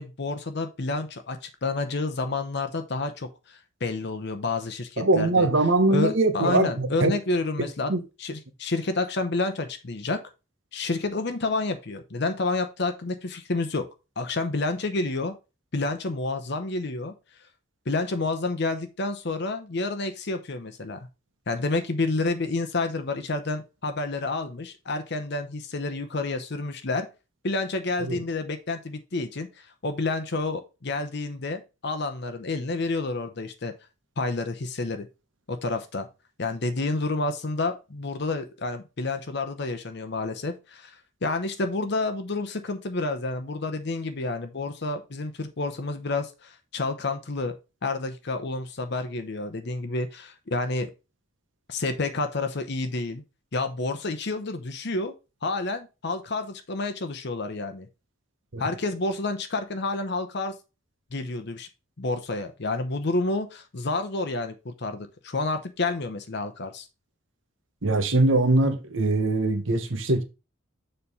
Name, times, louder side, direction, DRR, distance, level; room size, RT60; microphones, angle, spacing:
voice 1, 0.0-5.5 5.9-7.9 8.2-10.2 10.7-13.9 14.2-15.3 15.7-17.1 17.9-21.1 21.5-27.1 27.4-33.7 34.2-35.1 35.5-36.1 36.4-41.0 41.2-47.6 47.8-50.9 51.7-53.2 53.5-55.1 55.4-57.9 58.6-60.5 61.1-61.7 62.0-66.9, left 3 dB, 55° left, 0.8 m, -29 dB
voice 2, 5.0-7.1 7.9-8.0 28.0-28.2 58.5-58.6 67.8-70.2, right 2 dB, 70° right, 1.2 m, -22 dB
7.0 x 3.3 x 5.5 m
head